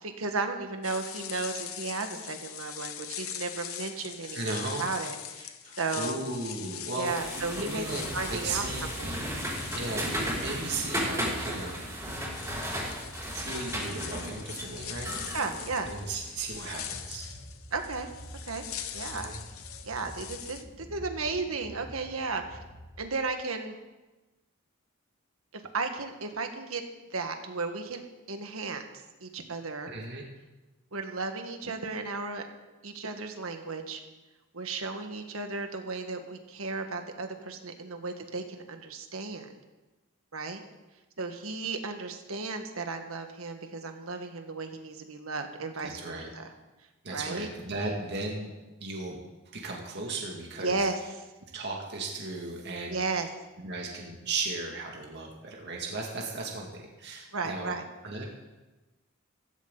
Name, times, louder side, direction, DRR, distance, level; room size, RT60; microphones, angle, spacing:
voice 1, 0.0-6.2 6.9-7.8 8.1-8.7 9.0-9.1 15.3-15.9 17.7-18.1 18.5-18.7 18.9-19.3 19.8-22.6 23.0-23.7 25.5-26.8 27.1-28.8 29.2-29.9 30.9-32.5 32.8-34.0 34.5-39.5 40.3-40.6 41.2-46.5 47.1-47.5 50.6-51.0 52.9-53.3 57.3-57.8, right 3 dB, 80° right, 6 dB, 1.6 m, -34 dB
sound 1, 0.8-20.6, left 10 dB, 85° left, 1.1 m, -42 dB
voice 2, 4.3-4.9 5.6-8.9 9.7-11.9 13.3-15.1 15.8-17.3 19.1-19.4 29.9-30.2 45.8-46.3 47.0-48.5 48.8-49.2 49.5-50.9 51.5-53.3 53.6-57.8 58.0-58.3, right 3 dB, 55° right, -1 dB, 2.3 m, -36 dB
sound 2, 7.0-16.6, equal, 15° right, 5.1 m, -35 dB
sound 3, 7.6-23.3, equal, 50° left, 3.9 m, -47 dB
15.5 x 15.5 x 4.0 m, 1.1 s
head